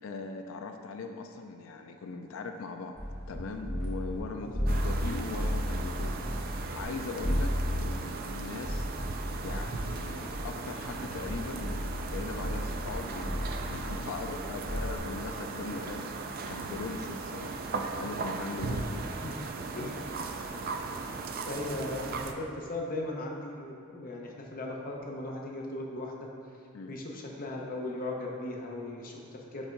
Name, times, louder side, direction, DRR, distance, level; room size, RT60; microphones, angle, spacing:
voice 1, 0.0-3.0 3.3-8.9 9.4-19.2 20.2-21.2 26.7-27.0, left 4 dB, 70° left, 4 dB, 0.4 m, -40 dB
sound 1, 3.0-4.2 4.5-6.8 7.2-15.0, equal, 20° right, 1.2 m, -34 dB
voice 2, 4.3-4.7 18.6-18.9 19.2-19.4 19.8-20.1 21.5-26.3 26.9-29.7, left 2 dB, 40° left, -1 dB, 0.7 m, -38 dB
sound 2, 4.7-22.3, right 4 dB, 45° right, 0.3 m, -38 dB
5.3 x 3.5 x 5.1 m, 2.5 s
head